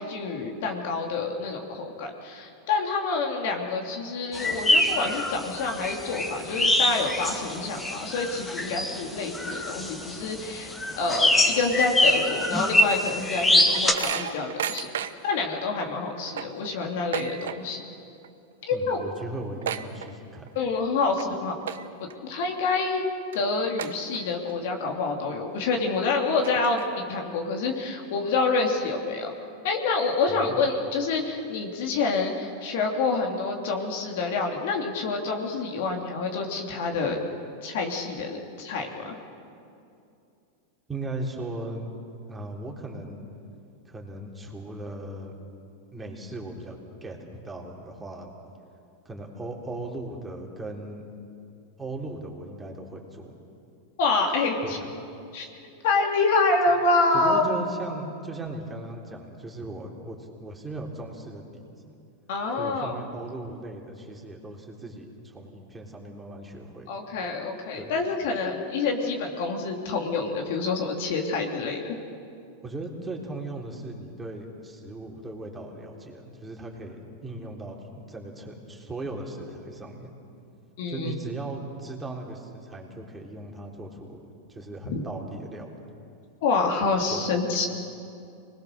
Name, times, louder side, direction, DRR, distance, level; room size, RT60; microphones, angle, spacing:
voice 1, 0.0-14.9 15.2-17.8 18.7-19.0 20.5-21.5 22.2-23.1 23.3-29.3 29.6-37.2 37.6-39.2 54.0-54.8 55.3-55.5 55.8-57.5 62.3-63.0 66.9-72.0 80.8-81.1 84.8-85.1 86.4-87.7, left 3 dB, 65° left, 2 dB, 3.0 m, -27 dB
sound 1, 4.3-13.9, left 1 dB, 15° left, 2.1 m, -24 dB
sound 2, 13.0-15.4 15.8-15.9 16.2-17.9 18.2-18.5 18.8-18.9 19.2-20.6 21.0-21.2 21.6-22.1 22.6-22.7 23.3-23.4 23.8-24.5 24.9-25.0 25.8-25.9 26.3-27.2, right 9 dB, 80° right, 1.0 m, -34 dB
voice 2, 18.7-20.6 30.3-30.6 40.9-41.9 42.3-43.2 43.9-45.4 45.9-48.3 49.1-51.0 51.8-53.3 54.6-54.7 57.1-61.9 62.6-66.9 67.7-67.9 72.6-80.1 80.9-84.2 84.5-85.8 87.1-87.3, right 2 dB, 15° right, -1 dB, 3.7 m, -38 dB
26.0 x 20.5 x 6.7 m, 2.5 s
hypercardioid pair, 110°, 0 cm